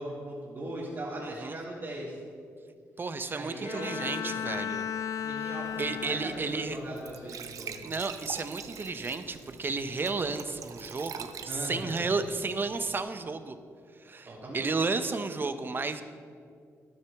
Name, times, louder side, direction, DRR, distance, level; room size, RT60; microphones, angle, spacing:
voice 1, 0.0-2.2 3.3-4.4 5.2-7.8 11.5-12.0 14.2-14.7, right 1 dB, 55° right, -8 dB, 3.0 m, -39 dB
voice 2, 1.2-1.6 3.0-4.9 5.8-6.8 7.8-13.6 14.0-16.0, right 4 dB, 35° right, 10 dB, 0.8 m, -32 dB
Bowed string instrument, 3.6-6.8, left 8 dB, 75° left, 0.4 m, -35 dB
Glass / Trickle dribble / Fill (with liquid), 5.7-13.0, right 8 dB, 70° right, 0.6 m, -45 dB
13.0 x 11.0 x 3.5 m, 2.3 s
cardioid pair, 70°, 6 cm